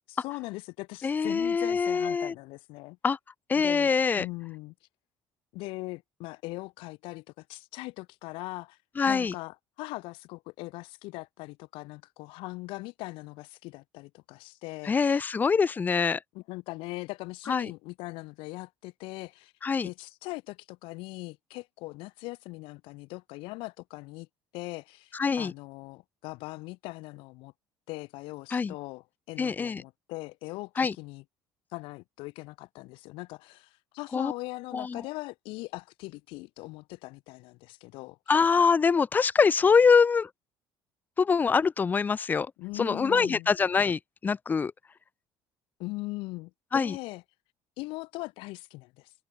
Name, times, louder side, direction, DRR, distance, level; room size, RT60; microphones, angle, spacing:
voice 1, 0.1-3.0 3.6-4.7 5.5-8.8 9.1-15.3 16.3-19.5 19.8-24.3 24.5-27.5 27.9-31.2 31.7-38.2 42.6-43.5 45.8-47.2 47.8-49.1, left 22 dB, 85° left, 2.2 m, -40 dB
voice 2, 1.0-2.3 3.0-3.2 3.5-4.3 9.0-9.3 14.8-16.2 17.5-17.7 19.6-19.9 25.1-25.5 28.5-28.7 29.4-29.8 30.8-30.9 34.1-34.3 34.7-35.0 38.3-40.3 41.2-44.7 46.7-47.0, left 5 dB, 20° left, 1.9 m, -24 dB
cardioid pair, 170°, 9 cm